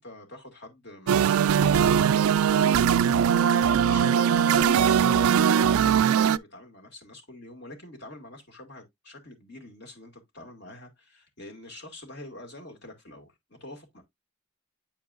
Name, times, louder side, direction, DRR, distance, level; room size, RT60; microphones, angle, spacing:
voice 1, 0.0-14.0, left 1 dB, 50° left, 2.2 m, -45 dB
sound 1, 1.1-6.4, right 8 dB, 85° right, 0.3 m, -21 dB
9.2 x 4.6 x 2.5 m
head